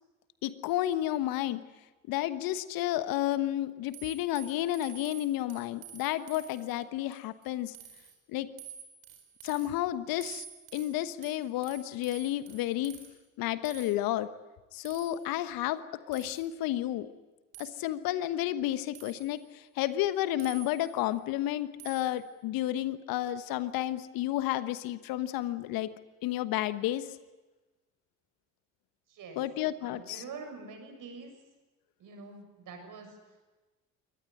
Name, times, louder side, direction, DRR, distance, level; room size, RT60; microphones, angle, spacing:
voice 1, 0.4-1.6 2.1-7.7 8.3-8.5 9.4-10.5 10.7-13.0 13.4-14.3 14.7-15.8 16.1-17.1 17.6-25.9 26.2-27.2 29.4-30.2, left 13 dB, 65° left, 14 dB, 1.3 m, -31 dB
sound 1, 3.9-6.7 7.1-7.5 7.7-8.1 8.6-9.7 10.2-13.1 13.6-13.9 14.8-15.2 16.1-16.5 17.5-17.8 18.9-19.4 20.4-21.0 21.8-22.2, right 9 dB, 70° right, 4.4 m, -49 dB
voice 2, 29.1-29.4 29.8-31.4 32.0-33.4, right 4 dB, 55° right, 5 dB, 7.1 m, -46 dB
23.0 x 19.0 x 9.8 m, 1.2 s
hypercardioid pair, 60°, 38 cm